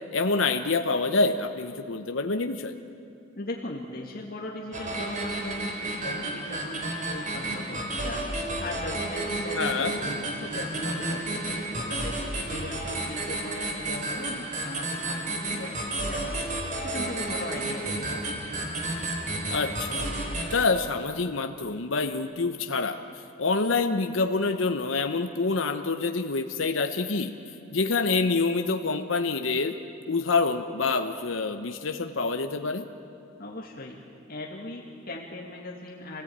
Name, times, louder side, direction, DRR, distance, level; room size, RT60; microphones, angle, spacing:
voice 1, 0.1-2.7 9.6-9.9 19.5-20.1 20.5-23.0 23.4-27.3 27.7-29.7 30.1-32.8, left 3 dB, 70° left, 6 dB, 1.0 m, -26 dB
voice 2, 3.4-7.8 8.0-8.2 8.6-12.2 12.5-16.4 16.8-18.4 33.4-34.0 34.3-36.2, left 1 dB, 50° left, -3 dB, 2.3 m, -38 dB
sound 1, 4.7-20.5, right 2 dB, 40° right, 3.5 m, -32 dB
27.0 x 18.0 x 8.8 m, 2.6 s
head